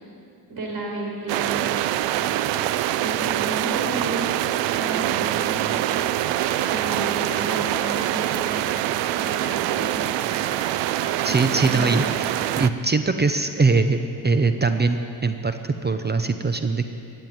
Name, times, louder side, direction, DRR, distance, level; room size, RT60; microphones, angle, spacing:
voice 1, 0.5-1.7 2.3-2.4 2.9-6.4 6.7-8.5 9.1-10.1 11.2-12.0, right 2 dB, 60° right, -1 dB, 4.4 m, -33 dB
sound 1, 1.3-12.7, right 13 dB, 90° right, 0.5 m, -24 dB
sound 2, 4.9-5.1 5.9-6.1 6.4-6.9 7.3-7.5 7.8-8.1 8.4-8.8 9.2-9.6 10.1-10.7 11.0-11.5 11.7-12.7, left 5 dB, 40° left, 1.8 m, -43 dB
voice 2, 11.2-12.3 12.6-16.9, right 3 dB, 25° right, 8 dB, 0.8 m, -22 dB
14.5 x 7.9 x 9.3 m, 2.5 s
supercardioid pair, 65°, 42 cm